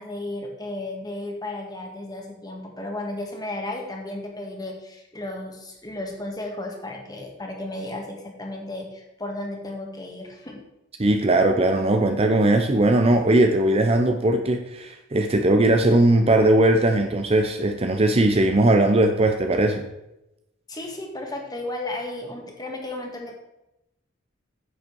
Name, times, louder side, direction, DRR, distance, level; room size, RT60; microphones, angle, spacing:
voice 1, 0.0-10.6 20.7-23.4, left 2 dB, 20° left, 1 dB, 1.8 m, -34 dB
voice 2, 11.0-19.8, right 1 dB, 30° right, 6 dB, 0.7 m, -19 dB
9.9 x 7.9 x 4.6 m, 0.91 s
head